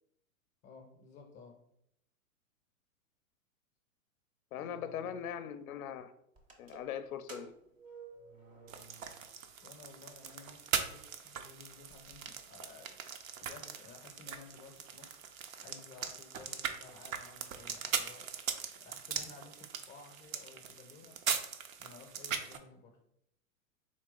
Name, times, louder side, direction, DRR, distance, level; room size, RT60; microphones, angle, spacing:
voice 1, 0.6-1.6 4.6-5.3 9.6-13.0 13.4-15.1 15.6-18.3 18.8-21.2 21.8-23.0, left 4 dB, 25° left, 3 dB, 0.6 m, -55 dB
voice 2, 4.5-6.1 6.6-7.5, left 9 dB, 70° left, 11 dB, 0.5 m, -40 dB
sound 1, 6.4-9.5 9.8-9.9 10.7-10.8 11.2-11.3 11.5-12.2, right 4 dB, 20° right, 0.6 m, -53 dB
sound 2, 8.7-22.6, right 7 dB, 65° right, 0.7 m, -40 dB
4.0 x 2.9 x 3.7 m, 0.75 s
hypercardioid pair, 120°, 44 cm